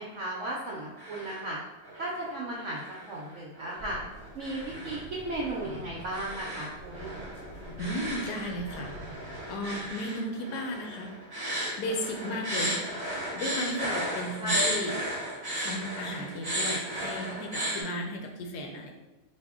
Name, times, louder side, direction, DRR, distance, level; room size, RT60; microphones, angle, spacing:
voice 1, 0.0-1.6 1.9-4.0 4.3-7.2 14.4-14.7, right 1 dB, 70° right, -4 dB, 0.7 m, -36 dB
sound 1, 0.7-1.5 1.8-2.3 2.7-17.8, equal, 25° right, 0.4 m, -35 dB
sound 2, 3.8-9.9, equal, 40° left, 0.8 m, -46 dB
voice 2, 7.8-8.9 9.5-11.4 11.8-12.8 13.4-14.9 15.5-18.9, left 1 dB, 70° left, 2 dB, 1.1 m, -35 dB
4.1 x 2.7 x 3.5 m, 1.1 s
omnidirectional pair, 1.9 m